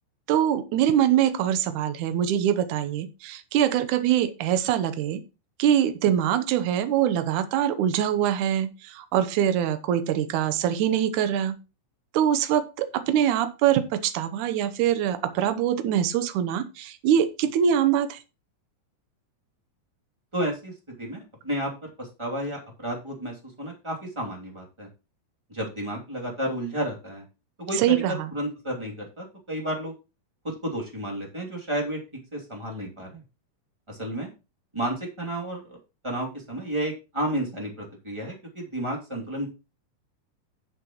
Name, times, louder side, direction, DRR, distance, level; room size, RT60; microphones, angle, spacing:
voice 1, 0.3-5.2 5.6-11.6 12.1-18.2 27.7-28.3, right 10 dB, 70° right, 10 dB, 2.1 m, -23 dB
voice 2, 20.3-24.9 25.5-27.2 27.6-27.9 28.3-29.9 30.4-32.0 32.3-33.2 33.9-34.3 34.7-35.8 36.0-39.5, right 1 dB, 10° right, -1 dB, 1.9 m, -32 dB
11.0 x 7.5 x 3.0 m, 0.29 s
omnidirectional pair, 4.3 m